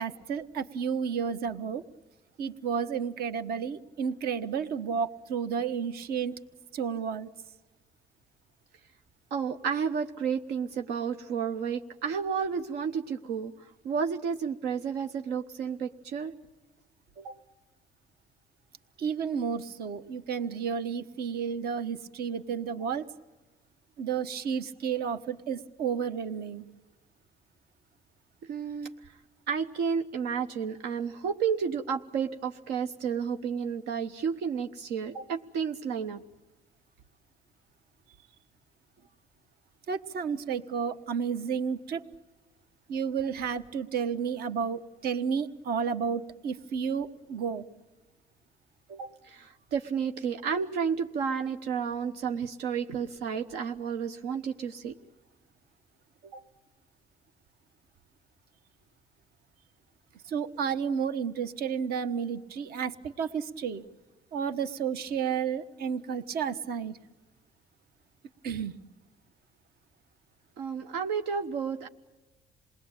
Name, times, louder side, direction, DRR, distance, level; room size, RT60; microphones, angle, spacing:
voice 1, 0.0-1.8 2.4-6.3 6.7-7.3 19.0-23.0 24.0-26.7 39.9-42.0 42.9-47.6 60.3-63.8 64.3-67.0 68.4-68.7, right 7 dB, 65° right, 10 dB, 1.3 m, -31 dB
voice 2, 9.3-16.3 17.2-17.4 28.5-29.2 29.5-36.2 48.9-55.0 56.2-56.4 70.6-71.9, right 6 dB, 85° right, 5 dB, 1.1 m, -31 dB
28.0 x 20.0 x 8.9 m, 1.1 s
cardioid pair, 110°, 17 cm